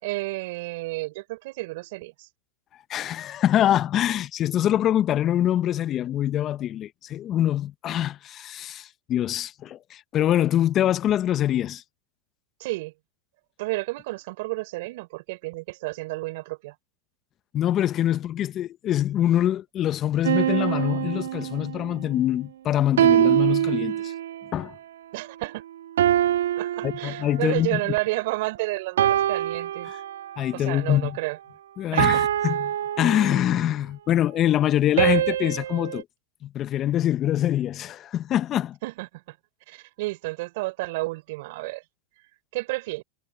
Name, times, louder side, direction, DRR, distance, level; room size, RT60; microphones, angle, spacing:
voice 1, 0.0-2.3 12.6-12.9 13.6-16.8 25.1-25.6 26.6-29.9 30.5-31.4 31.9-32.3 38.8-39.4 39.7-41.8 42.5-43.0, right 22 dB, 65° right, 4.1 m, -31 dB
voice 2, 2.9-11.8 17.5-24.1 24.5-24.7 26.8-27.8 29.9-30.0 30.4-31.2 31.8-32.6 33.0-36.0 36.4-38.8, left 11 dB, 35° left, 1.0 m, -24 dB
sound 1, 20.2-21.9 23.0-24.5 26.0-27.6 29.0-30.5 32.0-33.7 35.0-36.0, right 11 dB, 80° right, 3.0 m, -24 dB
hypercardioid pair, 110°, 0 cm